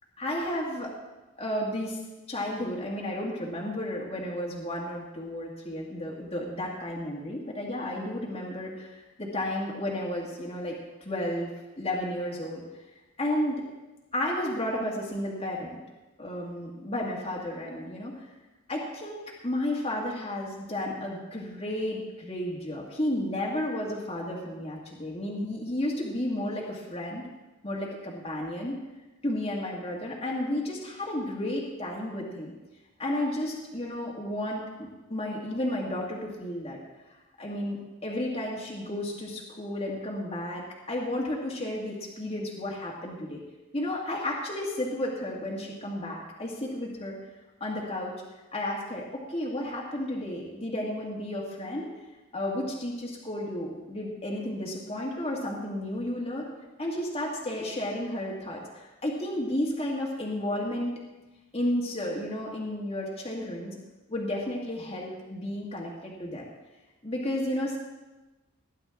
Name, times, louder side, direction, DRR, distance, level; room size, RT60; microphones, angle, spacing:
voice 1, 0.2-0.9 1.4-2.0 2.3-10.8 11.0-11.5 11.8-12.6 13.2-13.6 14.1-15.7 16.2-18.3 18.7-27.3 27.6-28.8 29.2-32.5 33.0-36.8 37.4-43.4 43.7-47.2 47.6-48.2 48.5-51.9 52.3-56.5 56.8-60.9 61.5-63.8 64.1-66.5 67.0-67.8, left 1 dB, 30° left, -3 dB, 2.0 m, -32 dB
19.0 x 10.5 x 3.7 m, 1.1 s
head